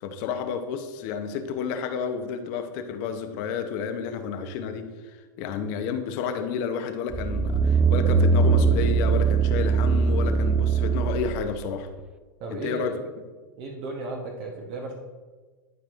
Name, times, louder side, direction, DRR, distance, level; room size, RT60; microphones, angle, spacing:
voice 1, 0.0-4.9 5.4-11.9 12.5-13.0, left 6 dB, 50° left, 8 dB, 0.8 m, -31 dB
sound 1, 7.1-11.5 12.0-12.1, right 5 dB, 10° right, 0.3 m, -21 dB
voice 2, 12.4-13.0 13.6-14.9, right 2 dB, 50° right, 0 dB, 1.1 m, -34 dB
12.0 x 4.7 x 2.5 m, 1.4 s
hypercardioid pair, 110°, 11 cm